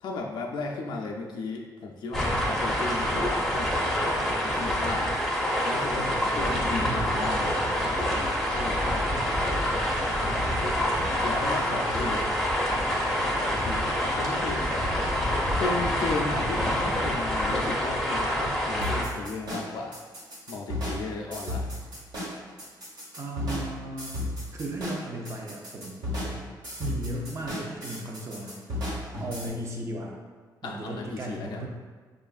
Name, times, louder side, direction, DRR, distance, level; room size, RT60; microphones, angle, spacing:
voice 1, 0.0-5.2 5.6-7.9 8.5-9.2 10.6-10.8 11.2-12.4 12.9-15.0 15.6-20.0 20.5-21.7 30.6-31.7, left 3 dB, 75° left, 0 dB, 0.4 m, -35 dB
sound 1, 2.1-19.0, equal, ahead, 0.7 m, -26 dB
voice 2, 6.0-7.2 10.4-12.3 16.2-17.1 23.2-24.2 24.5-26.5 26.8-28.9 29.2-30.2 30.6-31.7, right 1 dB, 40° right, 0 dB, 0.5 m, -37 dB
sound 2, 18.8-29.5, left 1 dB, 70° right, 1.4 m, -34 dB
6.0 x 2.4 x 2.4 m, 1.4 s
cardioid pair, 130°, 8 cm